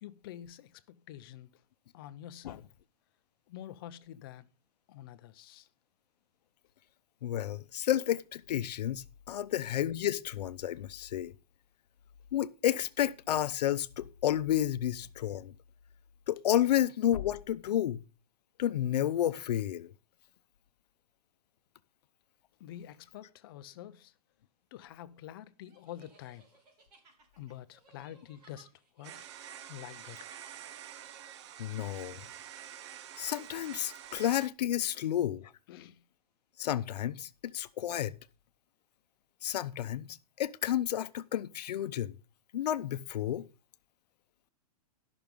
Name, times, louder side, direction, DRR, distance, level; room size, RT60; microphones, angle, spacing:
voice 1, 0.0-1.6 1.9-2.7 3.5-4.5 4.9-5.7 22.6-24.1 24.7-26.6 27.4-29.3 29.7-30.3 32.8-32.9 35.7-36.0, left 12 dB, 35° left, 0.5 m, -47 dB
voice 2, 7.2-11.3 12.3-15.5 16.3-18.0 18.6-19.9 31.6-32.2 33.2-35.5 36.6-38.2 39.4-40.1 40.4-42.1 42.5-43.5, left 11 dB, 90° left, 0.7 m, -31 dB
sound 1, 25.7-31.7, right 3 dB, 80° right, 4.1 m, -62 dB
sound 2, 29.0-34.5, right 10 dB, 45° right, 0.5 m, -47 dB
13.0 x 6.1 x 5.2 m
supercardioid pair, 170°, 20 cm